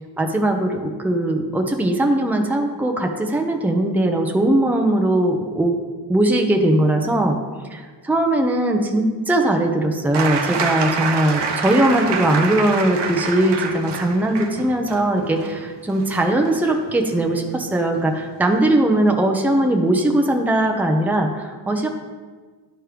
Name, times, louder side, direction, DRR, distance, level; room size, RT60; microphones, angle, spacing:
voice 1, 0.2-5.8 6.1-7.4 7.7-21.9, right 1 dB, 5° right, 2 dB, 0.8 m, -20 dB
sound 1, 10.1-17.7 18.9-19.0, right 5 dB, 70° right, 0.9 m, -27 dB
10.5 x 4.4 x 3.4 m, 1.4 s
cardioid pair, 60°, 43 cm